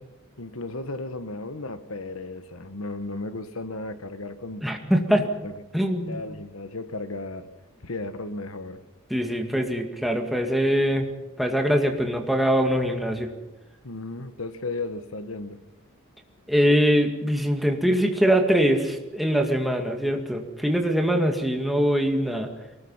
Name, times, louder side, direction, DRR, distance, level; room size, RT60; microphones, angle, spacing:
voice 1, 0.4-4.6 5.4-5.5 6.1-7.5 7.8-8.8 13.8-15.6, left 2 dB, 70° left, 11 dB, 1.3 m, -34 dB
voice 2, 4.6-5.3 5.7-6.2 9.1-11.1 11.4-13.3 16.5-22.5, equal, ahead, 2 dB, 2.1 m, -23 dB
23.5 x 19.5 x 5.7 m, 1.1 s
head